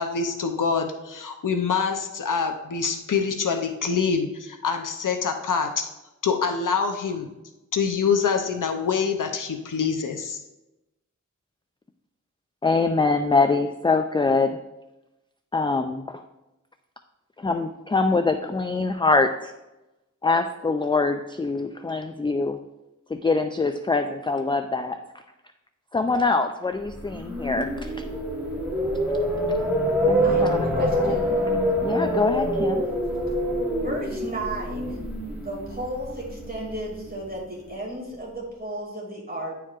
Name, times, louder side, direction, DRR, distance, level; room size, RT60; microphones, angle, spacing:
voice 1, 0.0-5.9 6.2-7.3 7.7-10.4, left 5 dB, 85° left, 5 dB, 0.6 m, -25 dB
voice 2, 12.6-14.6 15.5-16.2 17.4-19.5 20.2-22.6 23.1-25.0 25.9-27.7 30.1-30.7 31.0-31.2 31.8-32.9, left 3 dB, 15° left, 7 dB, 0.3 m, -24 dB
sound 1, 26.9-37.1, equal, 5° right, 1.6 m, -25 dB
voice 3, 30.2-31.4 33.8-35.0 35.3-39.6, right 1 dB, 30° right, -4 dB, 2.4 m, -34 dB
10.0 x 4.6 x 2.4 m, 0.97 s
wide cardioid pair, 85°, 31 cm